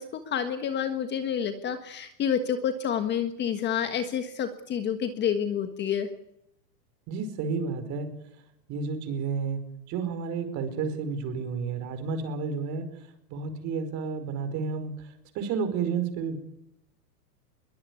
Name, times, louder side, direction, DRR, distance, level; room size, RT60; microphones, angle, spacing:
voice 1, 0.0-6.1, left 8 dB, 20° left, 8 dB, 1.5 m, -29 dB
voice 2, 7.1-8.1 8.7-9.6 9.9-12.9 13.3-14.9 15.3-16.4, right 5 dB, 35° right, 9 dB, 5.1 m, -31 dB
22.5 x 19.5 x 9.7 m, 0.79 s
hypercardioid pair, 145°, 49 cm